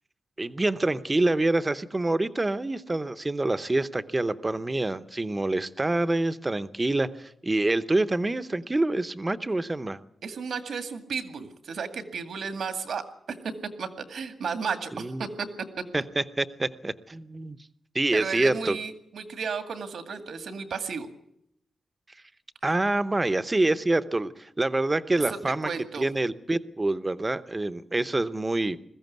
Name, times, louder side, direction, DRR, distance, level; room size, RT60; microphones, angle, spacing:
voice 1, 0.4-10.0 14.9-15.3 15.9-17.6 17.9-18.8 22.6-25.7 26.0-28.8, right 2 dB, 20° right, 12 dB, 0.8 m, -26 dB
voice 2, 10.2-13.0 13.3-13.5 13.8-15.5 18.1-21.1 25.3-25.4 25.6-26.1, right 5 dB, 75° right, 8 dB, 2.1 m, -33 dB
21.5 x 15.0 x 9.3 m, 0.75 s
wide cardioid pair, 155°, 0 cm